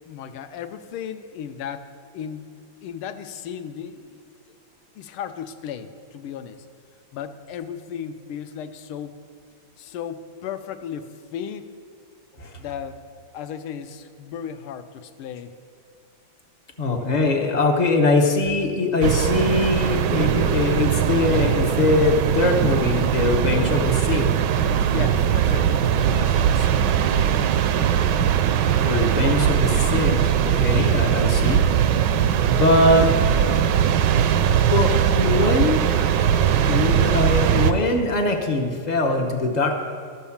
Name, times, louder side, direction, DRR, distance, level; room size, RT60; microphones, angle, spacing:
voice 1, 0.0-2.5 2.8-4.2 4.9-6.6 7.1-9.1 9.8-11.7 12.6-13.1 13.3-15.5 24.9-26.9, left 8 dB, 90° left, 8 dB, 1.6 m, -35 dB
voice 2, 16.8-24.3 28.8-31.6 32.5-33.1 34.7-35.8 36.7-39.8, left 3 dB, 50° left, 1 dB, 0.4 m, -22 dB
sound 1, 19.0-37.7, right 9 dB, 75° right, 1.1 m, -20 dB
12.5 x 7.3 x 7.1 m, 2.3 s
omnidirectional pair, 2.3 m